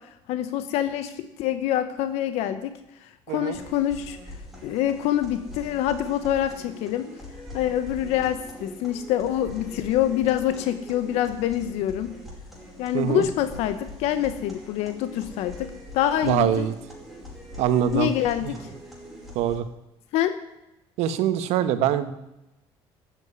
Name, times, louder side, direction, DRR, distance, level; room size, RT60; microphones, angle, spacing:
voice 1, 0.0-4.2 4.6-7.1 7.5-12.1 12.8-15.7 15.9-16.7 17.9-18.7 20.1-20.4, left 11 dB, 90° left, 11 dB, 1.0 m, -26 dB
sound 1, 3.5-19.5, left 1 dB, ahead, 5.2 m, -42 dB
voice 2, 16.3-16.7 17.6-18.1 18.4-18.5 19.3-19.6 21.0-22.1, right 10 dB, 90° right, 11 dB, 1.3 m, -23 dB
12.5 x 9.0 x 9.9 m, 0.92 s
cardioid pair, 135°, 11 cm